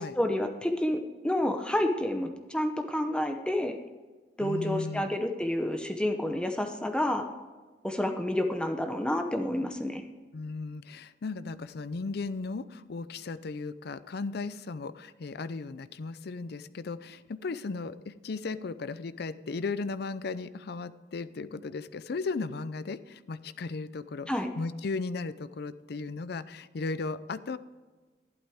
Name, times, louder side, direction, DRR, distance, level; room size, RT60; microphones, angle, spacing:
voice 1, 0.0-3.8 4.4-7.2 7.8-10.0 24.3-24.5, left 1 dB, 5° left, 5 dB, 0.7 m, -29 dB
voice 2, 4.4-5.1 10.3-24.3 24.6-27.6, left 3 dB, 65° left, 14 dB, 0.5 m, -36 dB
12.0 x 11.5 x 3.6 m, 1.3 s
head